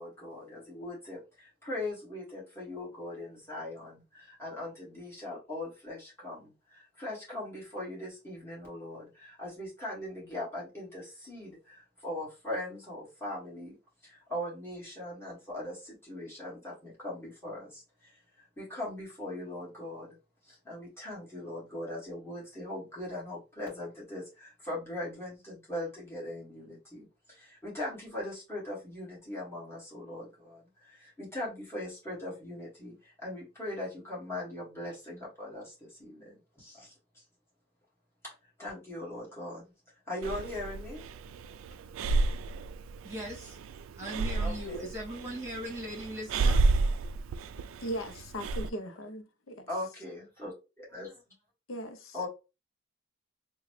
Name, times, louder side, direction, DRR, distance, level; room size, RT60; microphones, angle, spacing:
voice 1, 0.0-13.7 14.0-20.2 20.4-37.2 38.2-38.3 38.6-39.7 40.1-41.0 44.4-44.9 49.7-50.5 50.9-51.1 52.1-52.3, left 1 dB, 10° left, 2.0 m, -40 dB
Breathing, 40.2-48.7, right 3 dB, 85° right, 0.3 m, -31 dB
voice 2, 43.0-43.6 44.0-46.6, equal, 10° right, 1.9 m, -39 dB
voice 3, 47.8-49.7 51.7-52.2, right 1 dB, 85° left, 0.7 m, -38 dB
3.7 x 2.3 x 3.2 m
head